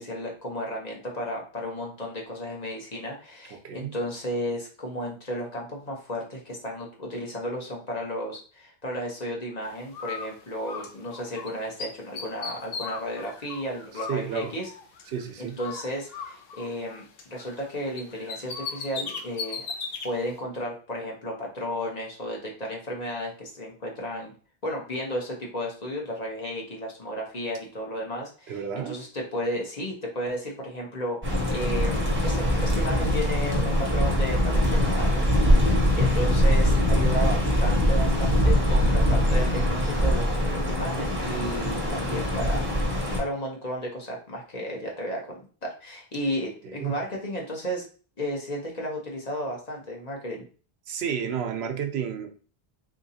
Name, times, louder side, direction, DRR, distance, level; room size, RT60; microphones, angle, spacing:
voice 1, 0.0-14.7 15.4-19.7 20.0-24.3 24.6-42.6 43.2-47.8 48.2-50.4, equal, 45° left, -1 dB, 1.0 m, -33 dB
voice 2, 3.5-3.9 14.1-14.6 15.1-15.6 28.5-29.0 46.6-47.0 50.9-52.3, right 7 dB, 85° right, 7 dB, 0.9 m, -31 dB
Bird, 9.9-11.5 11.8-15.2 15.6-17.7 18.0-20.1, left 5 dB, 70° left, 0.8 m, -37 dB
sound 1, 31.2-43.2, equal, 15° right, 0.7 m, -23 dB
3.7 x 2.8 x 2.7 m, 0.39 s
omnidirectional pair, 1.0 m